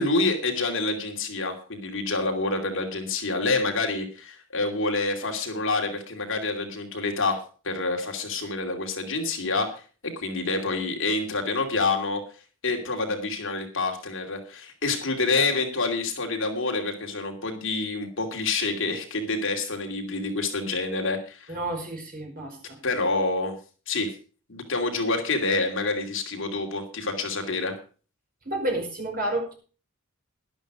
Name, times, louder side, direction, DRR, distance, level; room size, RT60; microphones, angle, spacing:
voice 1, 0.0-9.7 10.0-12.2 12.6-21.6 22.8-23.6 23.9-24.1 24.5-27.7, left 3 dB, 60° left, 3 dB, 2.7 m, -27 dB
voice 2, 21.5-22.8 28.5-29.5, right 1 dB, 40° right, 1 dB, 5.3 m, -30 dB
11.5 x 11.5 x 4.9 m, 0.37 s
head